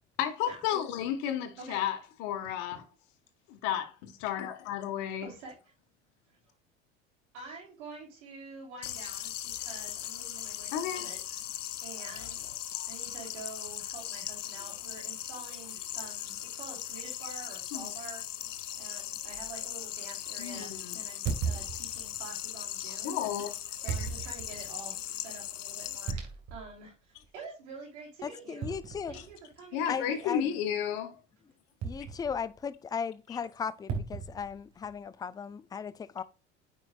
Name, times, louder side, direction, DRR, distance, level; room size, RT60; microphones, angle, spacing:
voice 1, 0.2-2.8 3.5-5.3 10.7-11.1 17.7-17.9 20.4-21.0 23.0-23.5 23.9-24.1 29.1-29.2 29.7-31.2 33.3-33.4, left 10 dB, 60° left, 1.4 m, -33 dB
voice 2, 5.2-5.5 7.3-11.2 11.8-12.4 12.9-18.2 18.7-23.2 23.8-26.9 27.3-28.8 29.1-30.3, right 4 dB, 70° right, 3.2 m, -47 dB
sound 1, 8.8-26.1, left 12 dB, 80° left, 0.7 m, -39 dB
sound 2, 19.3-19.5 21.3-22.3 23.9-24.7 26.1-26.7 27.2-27.3 28.6-29.5 31.8-32.6 33.9-35.0, right 5 dB, 45° right, 2.0 m, -36 dB
voice 3, 28.2-29.1 29.9-30.5 31.8-36.2, left 6 dB, 10° left, 0.4 m, -37 dB
9.1 x 5.3 x 2.4 m
figure-of-eight pair, 70°, 37 cm